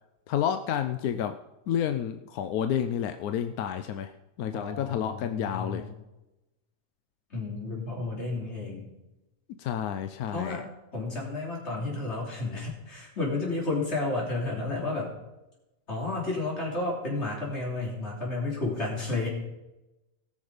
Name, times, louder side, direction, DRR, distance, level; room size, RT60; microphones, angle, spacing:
voice 1, 0.3-1.4 1.7-4.1 4.4-5.8 9.6-10.6, left 9 dB, 90° left, 9 dB, 1.1 m, -30 dB
voice 2, 4.5-5.9 7.3-8.9 10.3-10.6 10.9-15.1 15.9-19.3, left 2 dB, 50° left, -2 dB, 3.6 m, -32 dB
18.0 x 6.5 x 5.0 m, 0.98 s
omnidirectional pair, 1.5 m